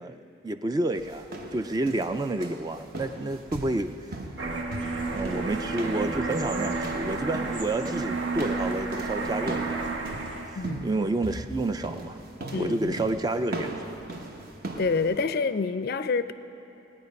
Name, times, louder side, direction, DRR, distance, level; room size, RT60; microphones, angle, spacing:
voice 1, 0.0-4.1 5.1-10.2 10.5-12.2 12.5-13.7, right 2 dB, 20° right, 9 dB, 0.3 m, -30 dB
sound 1, 0.9-15.2, right 2 dB, 50° right, 1.0 m, -39 dB
sound 2, 4.4-10.6, right 3 dB, 75° right, 1.2 m, -31 dB
voice 2, 12.5-12.9 14.8-16.3, left 4 dB, 50° left, 12 dB, 0.4 m, -27 dB
18.5 x 9.2 x 5.3 m, 2.9 s
head